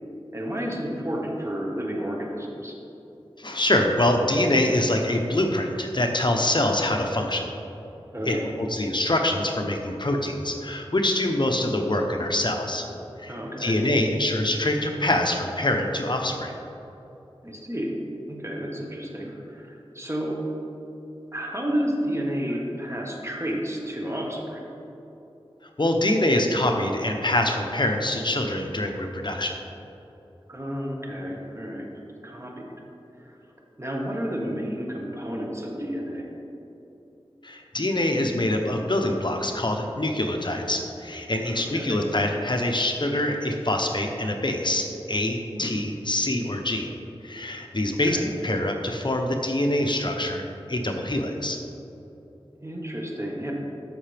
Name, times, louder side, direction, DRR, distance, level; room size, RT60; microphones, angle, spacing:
voice 1, 0.3-2.7 8.1-8.5 13.3-13.8 17.4-18.0 18.3-20.5 21.3-24.6 30.5-31.9 32.2-32.7 33.2-33.4 33.8-36.3 41.5-42.0 45.5-45.7 47.9-48.2 52.6-53.5, equal, 30° right, -1 dB, 1.5 m, -31 dB
voice 2, 3.4-7.5 8.2-12.9 13.2-16.5 25.8-29.6 37.4-46.9 47.2-51.6, left 1 dB, 50° left, 3 dB, 0.8 m, -25 dB
13.5 x 5.7 x 3.4 m, 3.0 s
wide cardioid pair, 45°, 10 cm